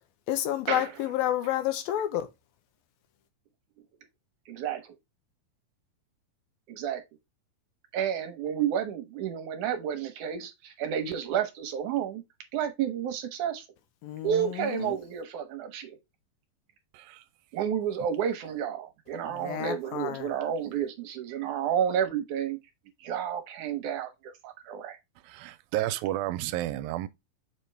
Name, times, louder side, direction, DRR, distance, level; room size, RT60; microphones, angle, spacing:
voice 1, 0.3-2.3 14.0-15.0 19.4-20.3, left 12 dB, 85° left, 2.8 m, -30 dB
voice 2, 4.5-5.0 6.7-7.0 7.9-12.2 12.5-13.7 14.2-16.0 17.5-22.6 23.0-25.0, right 9 dB, 70° right, 2.1 m, -31 dB
voice 3, 25.3-27.1, right 15 dB, 85° right, 2.3 m, -31 dB
7.0 x 4.4 x 3.3 m
omnidirectional pair, 4.1 m